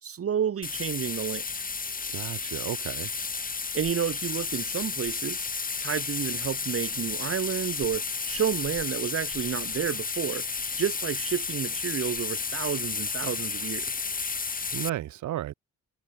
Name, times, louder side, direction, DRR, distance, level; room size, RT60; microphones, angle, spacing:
voice 1, 0.0-1.4 3.7-5.5 5.8-10.5 10.8-14.0, right 8 dB, 50° right, 1.8 m, -30 dB
sound 1, 0.6-14.9, left 5 dB, 30° left, 1.8 m, -32 dB
voice 2, 2.1-3.1 14.7-15.5, right 13 dB, 70° right, 1.3 m, -33 dB
cardioid pair, 90°, 30 cm